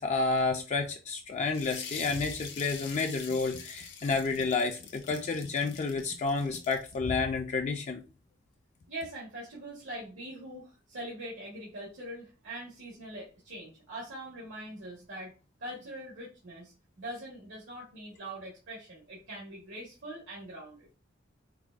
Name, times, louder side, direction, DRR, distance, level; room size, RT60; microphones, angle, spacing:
voice 1, 0.0-8.0, left 4 dB, 35° left, 0.4 m, -30 dB
sound 1, 1.5-7.0, left 6 dB, 65° left, 0.8 m, -45 dB
voice 2, 8.9-15.3 15.6-20.9, right 1 dB, 80° right, 1.3 m, -43 dB
4.7 x 2.1 x 2.4 m
head